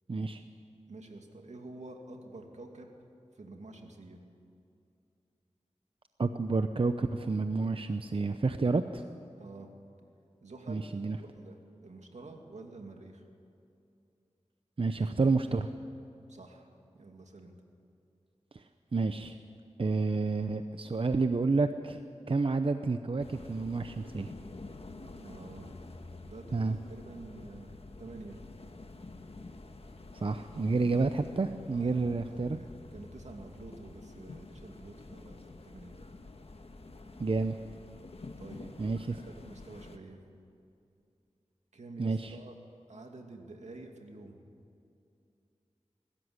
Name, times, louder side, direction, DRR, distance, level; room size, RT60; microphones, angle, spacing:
voice 1, 0.1-0.4 6.2-9.0 10.7-11.2 14.8-15.7 18.5-18.6 18.9-19.4 19.8-22.0 22.3-24.3 26.5-26.8 30.1-32.6 37.2-37.6 38.8-39.1 42.0-42.4, right 3 dB, 50° right, 8 dB, 0.7 m, -29 dB
voice 2, 0.9-2.9 3.3-4.2 9.4-9.7 10.4-10.9 11.2-13.2 16.3-16.7 16.9-17.5 25.1-25.7 26.2-28.4 31.6-35.4 35.6-36.0 38.4-38.7 39.1-40.2 41.7-42.5 42.9-44.4, right 2 dB, 80° right, 3 dB, 2.4 m, -48 dB
sound 1, 23.2-40.0, left 2 dB, 55° left, 1.4 m, -48 dB
22.0 x 13.0 x 9.7 m, 2.6 s
wide cardioid pair, 55°, 12 cm